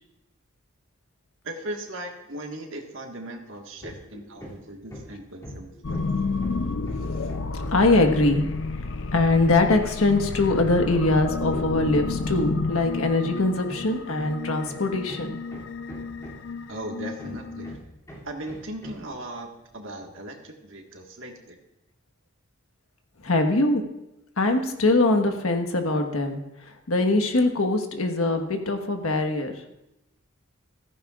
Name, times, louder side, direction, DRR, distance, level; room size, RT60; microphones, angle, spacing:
voice 1, 1.4-6.0 16.7-17.7 18.2-21.6, right 1 dB, 65° right, 2 dB, 1.7 m, -38 dB
Hammer, 3.8-4.1 4.4-8.0 9.7-16.6 17.2-19.1, equal, 15° left, 2.8 m, -41 dB
sound 1, 5.8-17.8, left 3 dB, 60° left, 0.5 m, -31 dB
voice 2, 7.7-8.5 9.1-15.4 23.2-23.8 24.4-26.4 26.9-29.6, left 2 dB, 90° left, 5 dB, 1.4 m, -22 dB
15.0 x 14.5 x 2.5 m, 0.90 s
head